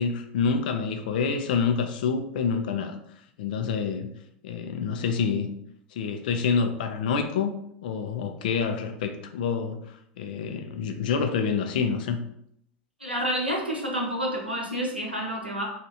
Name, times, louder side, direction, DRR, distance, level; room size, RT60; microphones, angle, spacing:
voice 1, 0.0-3.0 3.4-4.1 4.4-5.5 5.9-7.5 7.8-12.3, left 6 dB, 60° left, 7 dB, 0.4 m, -27 dB
voice 2, 13.0-15.6, equal, 90° right, -1 dB, 0.7 m, -29 dB
2.9 x 2.4 x 2.7 m, 0.73 s
figure-of-eight pair, 80°, 5 cm